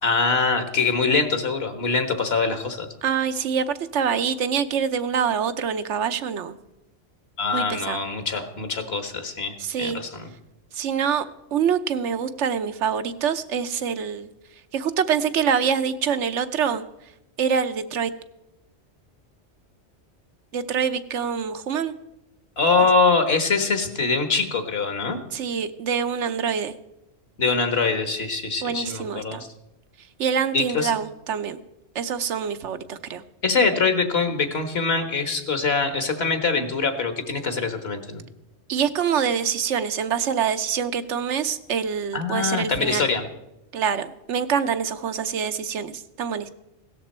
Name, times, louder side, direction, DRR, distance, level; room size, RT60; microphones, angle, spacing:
voice 1, 0.0-2.9 7.4-10.3 22.6-25.2 27.4-29.5 30.5-30.9 33.4-38.2 42.1-43.3, left 4 dB, 60° left, 8 dB, 1.7 m, -23 dB
voice 2, 3.0-3.7 3.9-6.5 7.5-8.0 9.6-10.0 10.7-11.2 11.5-14.3 14.7-16.8 17.4-18.1 20.5-21.9 25.3-26.7 28.6-29.4 30.2-31.6 31.9-33.2 38.7-43.1 43.7-46.5, right 7 dB, 90° right, 10 dB, 1.1 m, -25 dB
16.5 x 12.5 x 4.3 m, 0.89 s
omnidirectional pair, 1.2 m